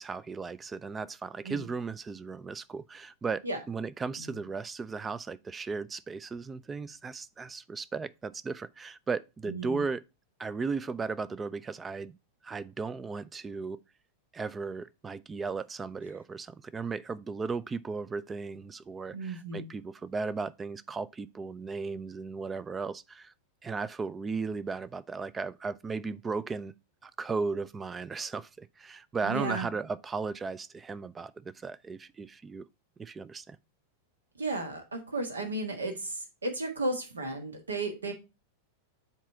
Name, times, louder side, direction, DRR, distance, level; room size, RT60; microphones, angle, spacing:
voice 1, 0.0-10.0 10.4-12.2 12.4-13.8 14.3-23.3 23.6-26.7 27.0-32.7 33.0-33.6, right 4 dB, 15° right, 0.3 m, -36 dB
voice 2, 9.5-9.8 19.1-19.7 29.2-29.7 34.4-38.1, right 2 dB, 75° right, 1.5 m, -34 dB
7.3 x 4.0 x 4.5 m
figure-of-eight pair, 90°, 0 cm